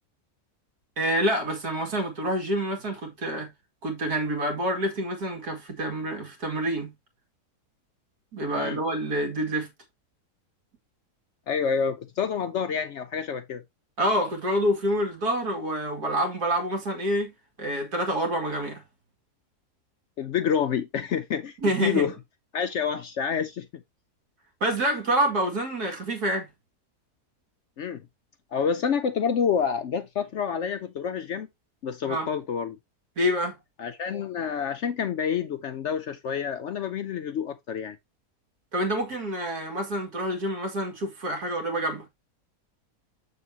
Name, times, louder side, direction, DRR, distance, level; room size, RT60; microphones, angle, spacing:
voice 1, 1.0-3.5 3.8-6.9 8.3-9.7 14.0-18.8 21.6-22.1 24.6-26.5 32.0-32.3 33.2-33.6 38.7-42.0, right 1 dB, 75° right, 2.6 m, -27 dB
voice 2, 11.5-13.6 20.2-22.1 22.5-23.8 27.8-28.0 28.5-31.5 31.8-32.8 33.8-38.0, left 7 dB, 65° left, 0.8 m, -28 dB
6.8 x 6.7 x 2.8 m
omnidirectional pair, 1.7 m